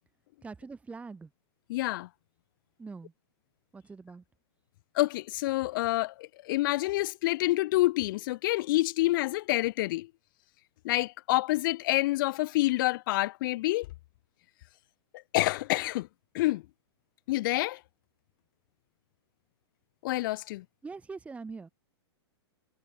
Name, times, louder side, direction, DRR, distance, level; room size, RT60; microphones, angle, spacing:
voice 1, 0.4-1.3 2.8-3.1 3.7-4.2 20.8-21.7, right 4 dB, 10° right, 1.3 m, -43 dB
voice 2, 1.7-2.1 4.9-10.1 10.8-13.9 15.1-16.1 16.3-16.6 17.3-17.8 20.0-20.6, left 18 dB, 50° left, 0.4 m, -28 dB
hypercardioid pair, 130°, 14 cm